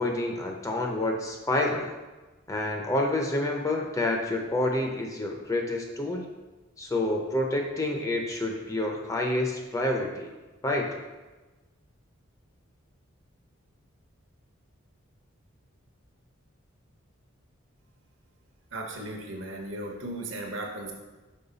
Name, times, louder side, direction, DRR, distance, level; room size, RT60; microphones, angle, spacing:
voice 1, 0.0-1.9 2.5-6.3 6.8-10.3 10.6-10.9, left 1 dB, 15° left, 1 dB, 0.5 m, -28 dB
voice 2, 18.7-20.9, right 1 dB, 60° right, 1 dB, 0.9 m, -36 dB
5.5 x 4.5 x 3.9 m, 1.2 s
head